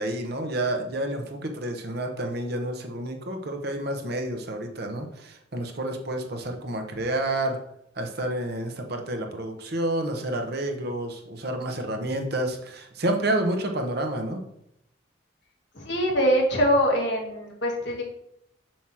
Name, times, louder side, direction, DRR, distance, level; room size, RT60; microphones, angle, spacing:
voice 1, 0.0-7.6 8.0-14.4, right 1 dB, 50° right, 4 dB, 0.9 m, -29 dB
voice 2, 15.8-18.0, equal, 55° left, 0 dB, 1.7 m, -23 dB
7.3 x 3.0 x 6.1 m, 0.77 s
head